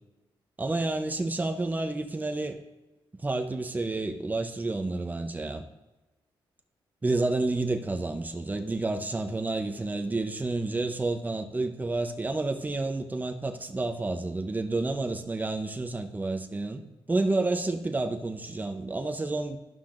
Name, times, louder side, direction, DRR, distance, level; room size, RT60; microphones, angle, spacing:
voice 1, 0.6-2.6 3.2-5.6 7.0-16.8 17.1-19.6, right 2 dB, 20° right, 5 dB, 0.8 m, -30 dB
13.5 x 5.6 x 2.6 m, 1.1 s
cardioid pair, 105°, 9 cm